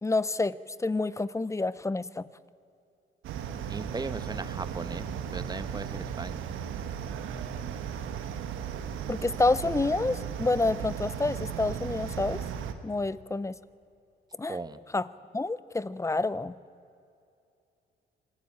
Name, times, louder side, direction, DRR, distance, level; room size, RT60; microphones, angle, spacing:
voice 1, 0.0-2.2 9.1-12.4 12.8-13.5 14.4-14.6 14.9-15.0 15.3-16.5, left 3 dB, 15° left, 18 dB, 0.6 m, -28 dB
sound 1, 3.2-12.7, right 8 dB, 85° right, 1.4 m, -36 dB
voice 2, 3.7-5.1 5.3-6.4 14.5-14.8, right 3 dB, 20° right, 12 dB, 1.1 m, -37 dB
25.0 x 16.5 x 8.7 m, 2.6 s
cardioid pair, 90°, 20 cm